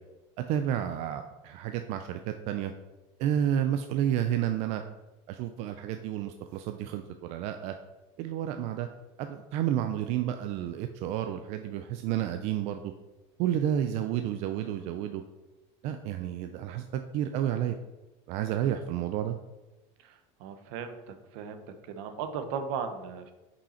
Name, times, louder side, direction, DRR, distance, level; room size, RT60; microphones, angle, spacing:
voice 1, 0.5-2.7 3.2-4.8 5.3-7.7 8.2-8.9 9.2-12.9 13.4-15.2 15.8-17.8 18.3-19.3, right 10 dB, 45° right, 7 dB, 0.4 m, -30 dB
voice 2, 20.0-21.6 21.9-23.3, right 6 dB, 65° right, 8 dB, 0.8 m, -37 dB
5.6 x 5.4 x 4.2 m, 1.1 s
cardioid pair, 160°, 15 cm